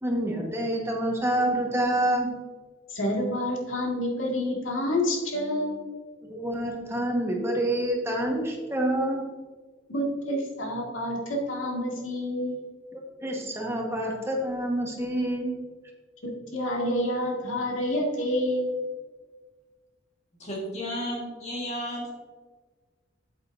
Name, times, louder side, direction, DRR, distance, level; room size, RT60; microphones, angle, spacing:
voice 1, 0.0-2.3 6.3-9.2 12.9-15.5, right 1 dB, 15° right, 0 dB, 1.4 m, -27 dB
voice 2, 2.9-5.8 9.9-12.6 16.2-18.7, left 1 dB, 85° left, -1 dB, 2.1 m, -28 dB
voice 3, 20.4-22.1, equal, 35° left, -3 dB, 1.6 m, -33 dB
8.2 x 8.1 x 2.6 m, 1.4 s
head